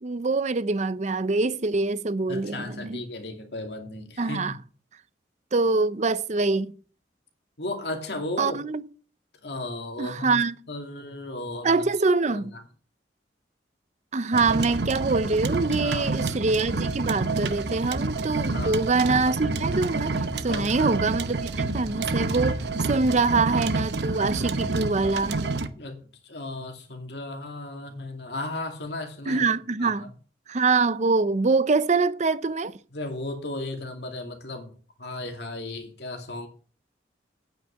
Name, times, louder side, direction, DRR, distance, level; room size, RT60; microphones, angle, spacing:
voice 1, 0.0-3.0 4.2-4.6 5.5-6.7 8.4-8.8 10.0-10.5 11.6-12.5 14.1-22.6 22.9-25.4 29.3-30.1 30.5-32.8, right 3 dB, 40° right, 0.6 m, -24 dB
voice 2, 2.3-4.5 7.6-8.6 9.4-11.8 12.3-12.6 15.8-16.1 18.5-18.8 20.5-20.9 25.7-29.4 29.8-30.1 32.9-36.5, left 2 dB, 70° left, 2.4 m, -35 dB
sound 1, 14.3-25.7, right 3 dB, 65° right, 0.9 m, -28 dB
9.1 x 5.7 x 8.2 m
head